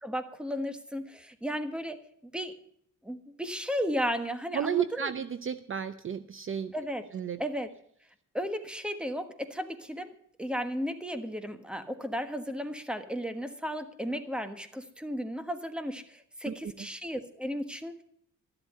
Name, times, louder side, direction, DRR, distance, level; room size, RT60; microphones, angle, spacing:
voice 1, 0.0-2.0 2.2-2.5 3.0-5.1 6.7-7.1 7.4-7.7 8.3-10.1 10.4-18.0, equal, 5° right, 9 dB, 1.3 m, -34 dB
voice 2, 4.5-6.7 7.1-7.4 16.5-16.6, right 8 dB, 40° right, 12 dB, 0.7 m, -32 dB
13.0 x 11.5 x 5.4 m, 0.66 s
wide cardioid pair, 135°, 32 cm